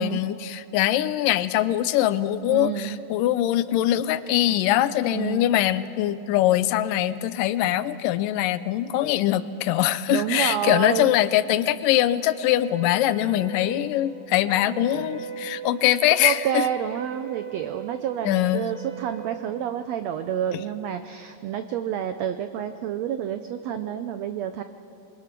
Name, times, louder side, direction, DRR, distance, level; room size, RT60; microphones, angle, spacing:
voice 1, 0.0-16.7 18.3-18.6, left 13 dB, 80° left, 14 dB, 2.2 m, -22 dB
voice 2, 2.5-3.0 5.1-5.5 10.1-11.1 16.2-24.6, right 9 dB, 85° right, 9 dB, 1.5 m, -29 dB
Wind instrument woodwind instrument, 12.6-19.2, right 7 dB, 10° right, 7.5 m, -40 dB
27.5 x 22.0 x 6.1 m, 2.8 s
omnidirectional pair, 3.9 m